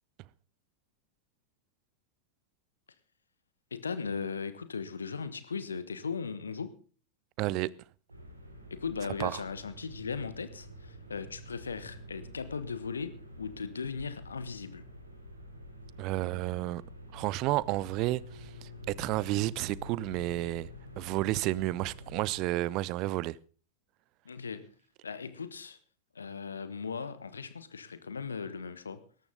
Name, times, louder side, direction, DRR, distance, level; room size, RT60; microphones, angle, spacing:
voice 1, 3.7-6.7 8.7-14.8 24.2-24.7 25.0-25.8 26.1-29.0, left 5 dB, 75° left, 1.3 m, -38 dB
voice 2, 7.4-7.7 9.2-9.4 16.0-16.8 17.1-20.7 21.0-23.4, right 18 dB, 40° right, 0.6 m, -31 dB
sound 1, 8.1-22.4, equal, 85° right, 3.8 m, -48 dB
18.5 x 14.0 x 3.9 m
figure-of-eight pair, 90°, 0 cm